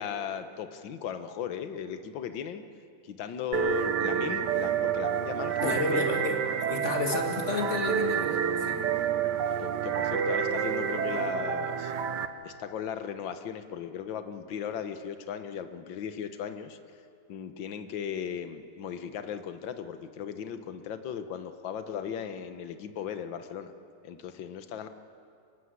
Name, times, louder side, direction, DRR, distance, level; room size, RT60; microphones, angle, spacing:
voice 1, 0.0-2.6 3.0-6.4 9.5-11.9 12.4-16.8 17.3-23.7 24.0-24.9, left 8 dB, 65° left, 9 dB, 1.8 m, -37 dB
sound 1, 3.5-12.3, right 8 dB, 60° right, 1.4 m, -29 dB
voice 2, 5.6-6.4 6.7-8.8, left 4 dB, 35° left, 2 dB, 2.4 m, -32 dB
25.5 x 16.0 x 9.6 m, 2.5 s
omnidirectional pair, 2.3 m